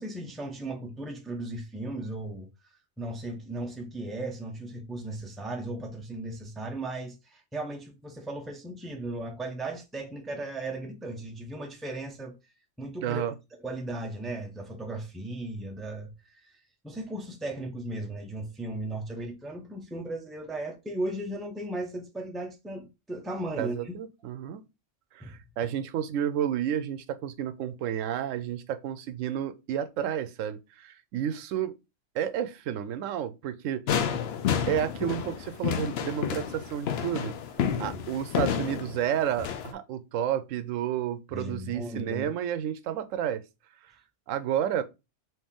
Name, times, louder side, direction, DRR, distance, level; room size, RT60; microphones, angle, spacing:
voice 1, 0.0-2.5 3.0-12.3 12.8-13.2 13.6-16.1 16.8-23.9 25.2-25.3 41.3-42.3, right 1 dB, ahead, 0.6 m, -36 dB
voice 2, 13.0-13.3 23.5-24.6 25.1-31.7 32.1-33.8 34.7-37.3 37.8-43.4 44.3-44.8, right 10 dB, 85° right, 0.9 m, -31 dB
sound 1, 33.9-39.7, left 8 dB, 60° left, 0.8 m, -30 dB
4.3 x 2.8 x 3.6 m
omnidirectional pair, 1.3 m